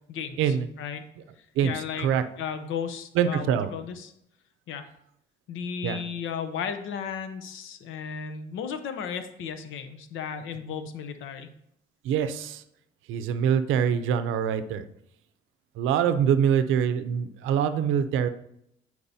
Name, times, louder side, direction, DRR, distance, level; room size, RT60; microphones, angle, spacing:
voice 1, 0.1-1.1 1.6-2.1 2.4-4.1 4.7-4.9 5.5-11.5, left 7 dB, 85° left, 9 dB, 0.7 m, -35 dB
voice 2, 3.2-3.7 5.8-6.0 12.0-12.6 13.1-14.8 15.8-18.3, right 8 dB, 90° right, 11 dB, 0.5 m, -24 dB
10.0 x 4.6 x 2.7 m, 0.76 s
cardioid pair, 90°, 20 cm